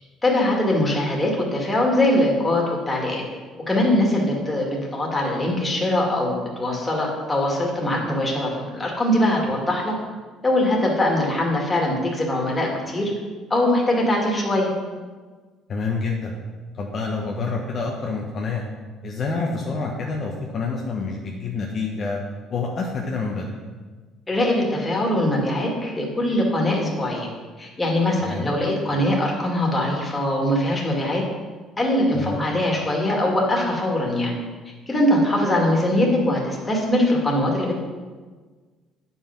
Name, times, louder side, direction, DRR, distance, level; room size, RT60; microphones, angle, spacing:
voice 1, 0.2-3.2 3.7-9.9 10.4-13.1 13.5-14.7 24.3-27.3 27.6-31.2 31.8-34.3 34.9-37.8, left 1 dB, 15° left, -2 dB, 2.3 m, -22 dB
voice 2, 15.7-16.4 16.7-18.6 19.0-22.2 22.5-23.6 28.2-28.4 32.1-32.4, left 4 dB, 40° left, -1 dB, 1.1 m, -27 dB
9.4 x 5.6 x 6.0 m, 1.4 s
cardioid pair, 120°, 0 cm